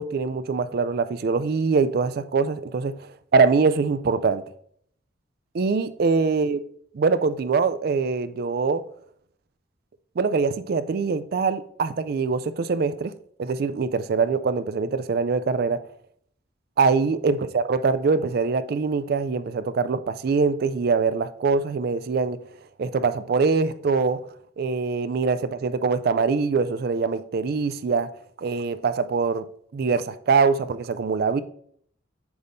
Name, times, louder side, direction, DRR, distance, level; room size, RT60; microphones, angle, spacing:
voice 1, 0.0-2.9 3.3-4.4 5.5-6.6 6.9-8.8 10.2-13.1 13.4-15.8 16.8-22.4 22.8-24.2 24.6-28.1 28.4-29.5 29.7-31.4, right 4 dB, 55° right, 0.4 m, -23 dB
7.9 x 5.3 x 2.6 m
head